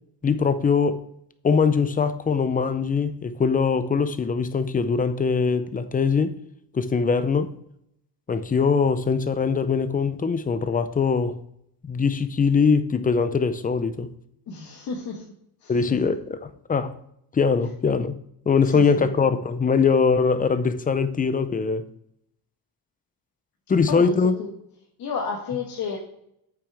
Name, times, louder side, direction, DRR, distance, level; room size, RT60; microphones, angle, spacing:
voice 1, 0.2-1.0 1.4-6.4 6.7-7.5 8.3-11.4 11.8-14.1 15.7-17.0 17.3-18.1 18.5-21.9 23.7-24.4, left 5 dB, 20° left, 0.5 m, -22 dB
voice 2, 14.5-15.2 15.6-16.0 18.7-19.1 23.9-24.5 25.0-26.0, left 5 dB, 60° left, 1.4 m, -32 dB
8.5 x 6.1 x 3.5 m
cardioid pair, 115°, 41 cm